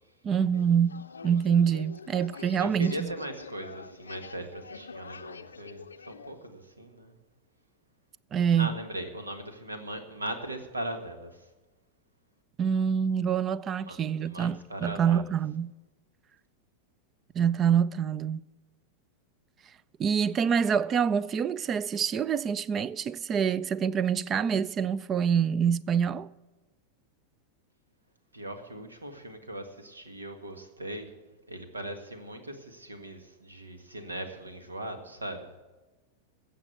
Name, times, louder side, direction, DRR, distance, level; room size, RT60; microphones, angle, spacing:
voice 1, 0.2-3.1 8.3-8.7 12.6-15.7 17.3-18.4 20.0-26.3, right 7 dB, 25° right, 0.4 m, -26 dB
sound 1, 0.5-6.5, left 5 dB, 75° left, 0.6 m, -46 dB
voice 2, 2.4-7.2 8.6-11.5 13.9-15.2 28.3-31.1 31.5-35.5, right 1 dB, 80° right, 1.7 m, -39 dB
15.0 x 7.7 x 8.0 m
figure-of-eight pair, 90°, 0 cm